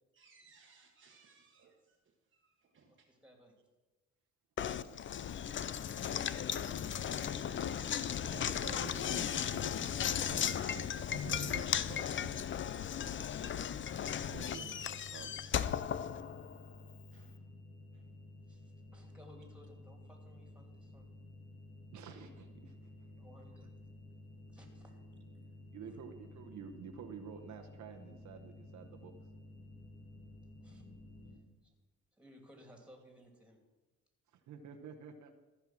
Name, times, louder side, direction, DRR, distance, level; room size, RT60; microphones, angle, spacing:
voice 1, 0.1-2.0 2.3-2.9 17.1-17.3, right 4 dB, 40° right, 1 dB, 1.2 m, -64 dB
voice 2, 3.1-3.5 18.5-18.6 18.9-21.1 23.2-23.7 24.5-25.0 25.9-26.0 30.6-30.9 31.6-31.7 32.2-33.6, equal, 5° right, 2 dB, 2.7 m, -60 dB
Knock, 4.6-16.7, left 9 dB, 40° left, 0.5 m, -36 dB
voice 3, 8.2-9.9 10.2-12.5 14.1-15.4 21.9-23.1 25.7-29.1 34.3-35.3, right 7 dB, 75° right, 4 dB, 1.0 m, -50 dB
sound 1, 13.9-31.3, left 2 dB, 70° left, 2.3 m, -53 dB
14.0 x 5.6 x 6.0 m, 1.2 s
cardioid pair, 90°, 30 cm